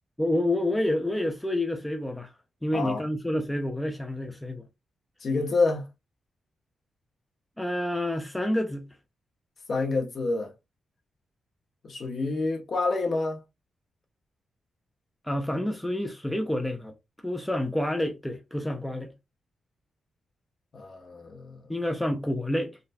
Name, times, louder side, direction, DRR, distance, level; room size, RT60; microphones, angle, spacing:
voice 1, 0.2-2.3 2.6-4.6 7.6-8.9 15.2-16.9 17.2-19.1 21.7-22.8, left 1 dB, 5° left, 0.4 m, -28 dB
voice 2, 2.7-3.0 5.2-5.9 9.7-10.5 11.8-13.4 20.7-21.6, left 3 dB, 50° left, 1.0 m, -28 dB
3.8 x 2.2 x 2.6 m
cardioid pair, 110°, 0 cm